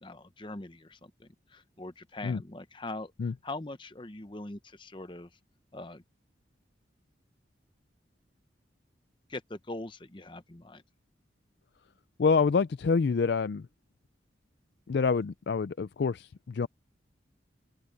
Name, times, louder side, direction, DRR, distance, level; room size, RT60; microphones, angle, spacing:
voice 1, 0.0-5.4 5.7-6.0 9.3-10.8, left 2 dB, 25° left, 0.9 m, -42 dB
voice 2, 12.2-13.7 14.9-16.7, left 5 dB, 65° left, 0.4 m, -27 dB
head